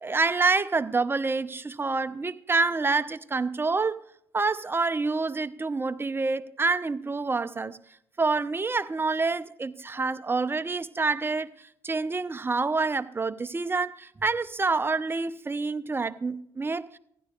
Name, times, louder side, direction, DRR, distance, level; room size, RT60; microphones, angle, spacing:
voice 1, 0.0-4.0 4.3-7.8 8.2-11.5 11.8-17.0, right 3 dB, 20° right, 0.7 m, -27 dB
15.5 x 10.5 x 2.5 m
hypercardioid pair, 55°, 10 cm